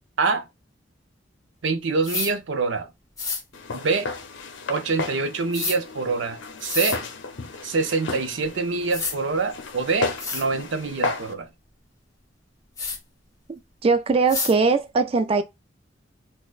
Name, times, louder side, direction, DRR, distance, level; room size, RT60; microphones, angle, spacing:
voice 1, 1.6-2.9 3.7-4.1 4.7-7.0 7.6-11.5, right 4 dB, 80° right, 0.6 m, -25 dB
sound 1, 2.0-2.3 3.2-3.4 5.5-5.8 6.6-7.0 8.4-8.5 8.9-9.2 9.8-9.9 10.2-10.5 12.8-13.0 14.3-14.5, left 4 dB, 20° left, 1.4 m, -28 dB
Walk footsteps, 3.5-11.3, left 3 dB, 80° left, 0.7 m, -33 dB
voice 2, 13.8-15.4, right 4 dB, 30° right, 0.3 m, -20 dB
6.2 x 2.1 x 2.4 m
head